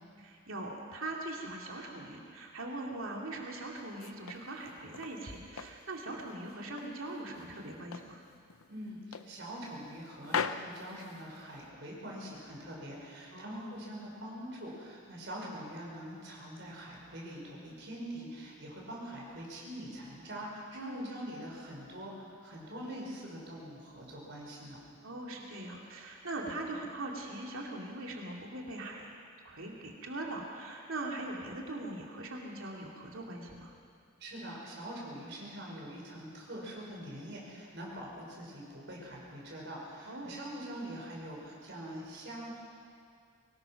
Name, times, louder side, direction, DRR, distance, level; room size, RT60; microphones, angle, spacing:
voice 1, 0.2-8.2 13.3-13.8 20.7-21.1 25.0-29.2 29.4-33.7 40.0-40.4, right 2 dB, 75° right, -1 dB, 2.7 m, -41 dB
sound 1, 3.7-5.2 5.6-7.0 7.3-8.2 8.5-8.7 9.1-10.0 10.2-11.7, left 6 dB, 90° left, 0.7 m, -39 dB
voice 2, 8.7-24.8 26.4-26.6 34.2-42.6, equal, 55° right, -3 dB, 5.6 m, -44 dB
23.5 x 19.0 x 6.0 m, 2.3 s
head